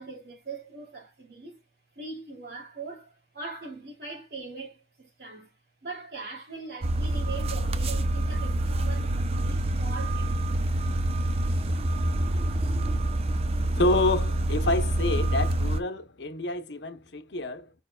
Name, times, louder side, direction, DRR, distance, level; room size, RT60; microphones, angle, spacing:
voice 1, 0.0-1.6 1.9-5.6 5.8-10.8, right 3 dB, 65° right, 2.8 m, -41 dB
sound 1, 6.8-15.8, right 1 dB, 35° right, 0.5 m, -26 dB
voice 2, 13.8-17.7, left 2 dB, 80° left, 0.8 m, -28 dB
5.2 x 4.4 x 2.3 m
head